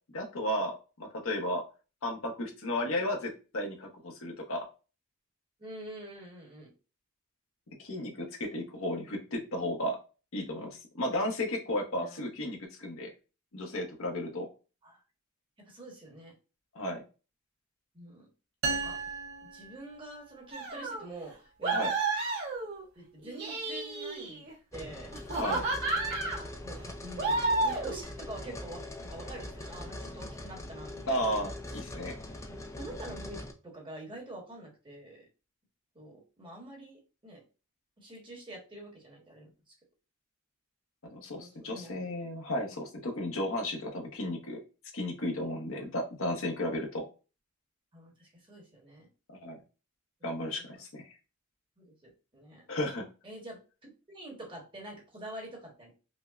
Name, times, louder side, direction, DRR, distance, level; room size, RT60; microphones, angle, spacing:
voice 1, 0.1-0.7 1.0-1.6 2.0-4.6 7.8-10.0 10.3-13.1 13.5-14.5 16.7-17.0 21.7-21.9 25.3-25.6 31.1-32.2 41.1-44.6 44.9-47.0 49.4-49.6 50.2-51.2 52.7-53.1, left 1 dB, 65° left, 2 dB, 0.9 m, -34 dB
voice 2, 5.6-6.7 12.0-12.2 14.8-15.0 15.6-16.3 17.9-18.3 18.7-19.0 19.5-21.8 22.9-25.1 26.6-31.4 32.5-35.2 35.9-37.4 38.0-39.5 41.4-41.9 45.8-45.9 47.9-49.1 51.8-52.7 53.2-55.9, right 1 dB, 25° right, -2 dB, 1.2 m, -46 dB
sound 1, 18.6-20.4, right 4 dB, 70° right, 0.6 m, -35 dB
sound 2, 20.5-21.0 21.6-22.8 23.2-24.5 25.1-26.4 27.2-28.0, right 3 dB, 55° right, 1.3 m, -31 dB
sound 3, 24.7-33.5, left 1 dB, 15° left, 0.4 m, -42 dB
5.1 x 2.1 x 2.4 m, 0.32 s
head